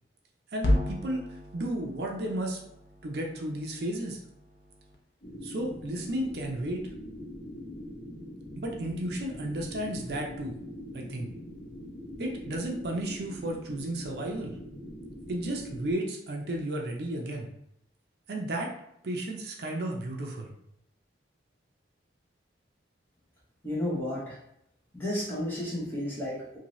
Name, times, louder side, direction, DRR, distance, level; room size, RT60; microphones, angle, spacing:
voice 1, 0.5-2.6 3.0-4.2 5.4-6.8 8.6-10.6 10.9-11.3 12.2-14.6 15.3-17.5 18.3-18.7 19.0-20.5, right 1 dB, 60° right, 1 dB, 0.5 m, -33 dB
sound 1, 0.6-5.0, left 1 dB, 80° left, 0.6 m, -33 dB
sound 2, 5.2-15.9, equal, 55° left, 1.2 m, -43 dB
voice 2, 23.6-24.4 24.9-26.6, left 1 dB, 10° left, -6 dB, 0.8 m, -32 dB
2.7 x 2.6 x 3.0 m, 0.76 s
head